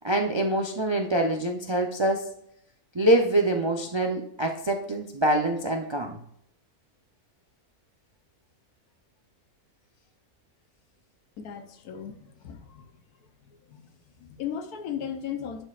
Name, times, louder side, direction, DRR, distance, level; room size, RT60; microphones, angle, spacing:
voice 1, 0.0-2.2 2.9-6.2, right 1 dB, 50° right, 2 dB, 0.3 m, -25 dB
voice 2, 11.4-12.9 13.5-13.9 14.2-15.6, left 8 dB, 90° left, 8 dB, 1.3 m, -36 dB
11.5 x 4.4 x 2.4 m, 0.72 s
omnidirectional pair, 1.6 m